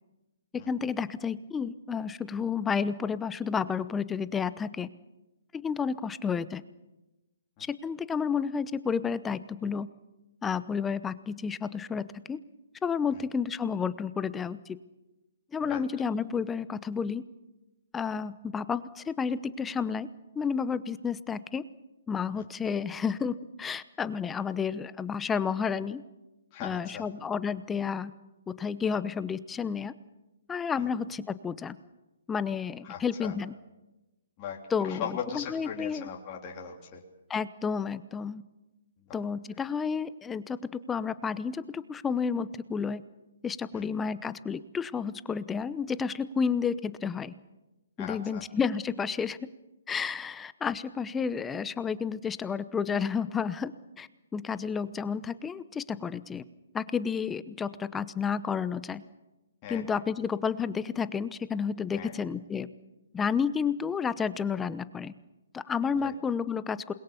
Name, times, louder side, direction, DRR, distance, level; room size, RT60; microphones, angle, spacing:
voice 1, 0.7-4.9 5.5-6.6 7.7-9.9 10.4-12.4 12.8-14.8 15.5-17.2 17.9-20.1 20.3-21.6 22.1-26.0 26.6-28.1 28.6-29.9 30.5-31.7 32.3-33.5 34.7-35.0 35.3-36.1 37.3-38.4 39.1-40.6 40.9-43.0 43.4-47.3 48.0-49.4 49.9-53.7 54.0-56.4 56.7-59.0 59.7-62.7 63.1-65.1 65.5-66.9, left 6 dB, 10° left, 15 dB, 0.8 m, -31 dB
voice 2, 26.5-27.1 30.8-30.9 32.8-33.3 34.4-37.0 39.0-39.2 43.7-43.9 48.0-48.4 59.6-59.8 61.9-62.3 65.9-66.1, left 7 dB, 30° left, -1 dB, 3.4 m, -39 dB
28.0 x 21.5 x 7.0 m, 1.0 s
hypercardioid pair, 140°, 0 cm